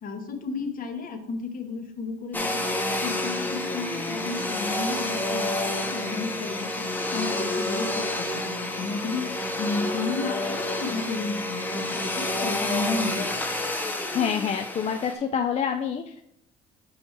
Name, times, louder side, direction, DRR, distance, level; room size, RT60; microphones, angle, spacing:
voice 1, 0.0-13.5, left 4 dB, 55° left, 6 dB, 1.2 m, -33 dB
Domestic sounds home sounds, 2.3-15.1, left 1 dB, 10° left, 0.9 m, -29 dB
voice 2, 14.1-16.2, left 7 dB, 40° left, 5 dB, 0.5 m, -27 dB
6.2 x 4.4 x 4.4 m, 0.75 s
cardioid pair, 110°, 17 cm